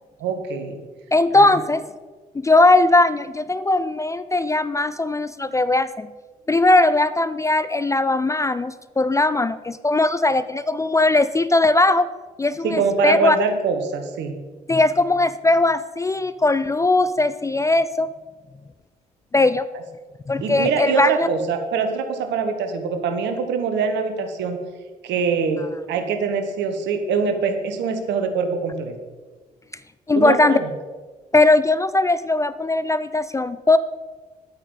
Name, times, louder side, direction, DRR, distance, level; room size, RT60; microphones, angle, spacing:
voice 1, 0.2-0.8 1.3-1.6 12.6-14.4 20.4-24.6 25.0-28.9 30.1-30.7, right 5 dB, 60° right, 6 dB, 1.2 m, -23 dB
voice 2, 1.1-1.9 2.3-6.1 6.5-12.1 12.4-13.4 14.7-18.1 19.3-19.7 20.3-21.3 30.1-30.6 31.3-33.8, left 2 dB, 15° left, 14 dB, 0.4 m, -19 dB
9.7 x 8.8 x 4.2 m, 1.4 s
figure-of-eight pair, 45°, 20 cm